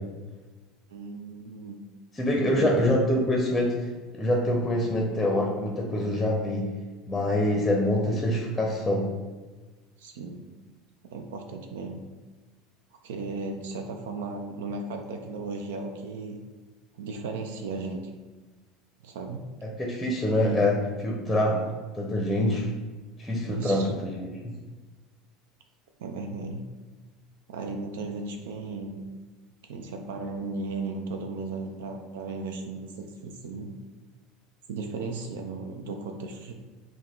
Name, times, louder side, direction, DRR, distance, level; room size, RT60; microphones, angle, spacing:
voice 1, 0.9-1.8 2.4-2.9 10.0-10.5 11.0-12.0 13.0-16.4 17.0-18.1 19.0-19.5 20.4-20.6 21.5-21.7 23.5-23.9 26.0-26.7 27.5-29.1 29.7-33.7 34.7-36.5, right 3 dB, 85° right, 4 dB, 0.4 m, -35 dB
voice 2, 2.1-3.9 4.1-6.7 7.1-9.1 19.6-20.8 21.0-21.6 21.9-22.7 23.2-24.5, left 1 dB, 10° left, 0 dB, 0.7 m, -25 dB
4.4 x 2.2 x 3.7 m, 1.3 s
supercardioid pair, 100°, 0 cm